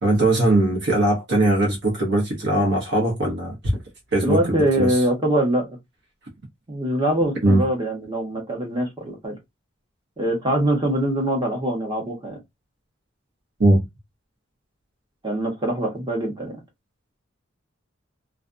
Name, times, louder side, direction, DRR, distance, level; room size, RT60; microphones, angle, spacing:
voice 1, 0.0-3.5 4.1-5.0 7.4-7.6 13.6-13.8, right 2 dB, 60° right, 0.8 m, -20 dB
voice 2, 4.2-5.7 6.7-9.4 10.2-12.4 15.2-16.6, right 1 dB, 25° right, 1.0 m, -23 dB
2.4 x 2.2 x 2.5 m
head